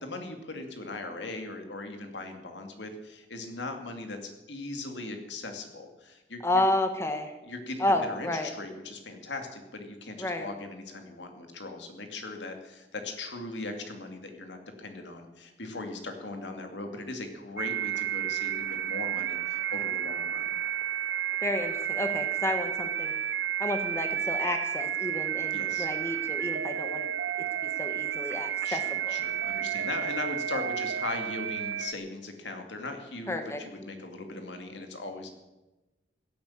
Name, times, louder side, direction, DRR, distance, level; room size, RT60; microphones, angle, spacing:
voice 1, 0.0-6.6 7.4-20.5 25.5-25.9 28.6-33.3 33.6-35.3, left 2 dB, 85° left, 5 dB, 2.5 m, -39 dB
voice 2, 6.4-7.3 7.8-8.5 10.2-10.5 21.4-23.1 23.6-27.1 27.6-29.2 33.3-33.6, left 1 dB, 15° left, 5 dB, 1.2 m, -31 dB
sound 1, 17.6-31.9, right 10 dB, 85° right, 0.7 m, -31 dB
16.5 x 8.7 x 8.7 m, 1.1 s
head